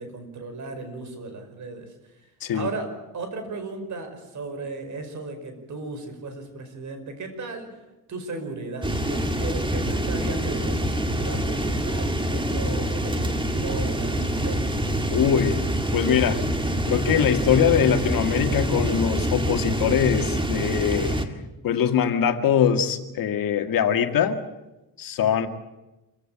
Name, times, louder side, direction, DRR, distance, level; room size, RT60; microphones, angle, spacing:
voice 1, 0.0-1.9 2.5-7.7 8.1-14.9, right 3 dB, 55° right, 7 dB, 5.4 m, -36 dB
sound 1, 8.8-21.3, right 1 dB, 15° right, 1.9 m, -26 dB
voice 2, 15.1-15.6 15.9-16.4 16.8-21.1 21.6-24.4 25.0-25.5, left 8 dB, 70° left, 7 dB, 1.9 m, -22 dB
26.0 x 16.0 x 8.7 m, 1.0 s
cardioid pair, 130°, 35 cm